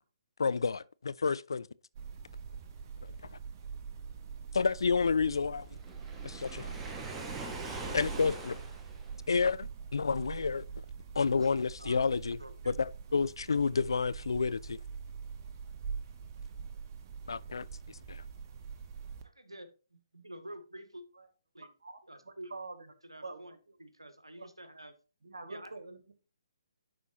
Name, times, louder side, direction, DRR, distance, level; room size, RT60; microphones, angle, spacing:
voice 1, 0.4-1.7 3.3-3.4 4.5-5.7 6.2-6.7 7.9-8.6 9.3-10.6 11.2-12.4 12.7-14.8 17.3-18.2, left 5 dB, 70° left, 0.3 m, -30 dB
sound 1, 1.9-19.2, right 6 dB, 35° right, 0.9 m, -44 dB
Waves surf, 5.8-9.3, right 3 dB, 15° right, 1.1 m, -42 dB
voice 2, 12.4-12.8 19.2-21.0 21.5-21.7 22.1-22.5 23.0-25.0 25.5-25.7, right 1 dB, 90° right, 1.1 m, -49 dB
voice 3, 21.6-22.9 23.2-23.8 24.4-24.5 25.2-26.1, right 3 dB, 70° right, 1.5 m, -46 dB
11.0 x 4.2 x 2.8 m
figure-of-eight pair, 135°, 3 cm